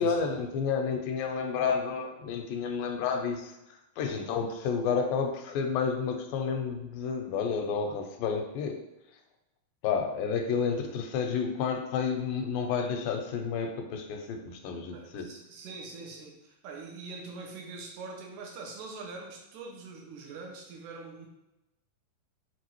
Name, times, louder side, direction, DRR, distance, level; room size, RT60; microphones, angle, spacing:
voice 1, 0.0-3.6 4.0-8.8 9.8-15.3, left 6 dB, 85° left, 5 dB, 2.3 m, -30 dB
voice 2, 14.9-21.3, right 3 dB, 75° right, 0 dB, 2.1 m, -43 dB
6.0 x 2.5 x 2.9 m, 0.91 s
omnidirectional pair, 4.0 m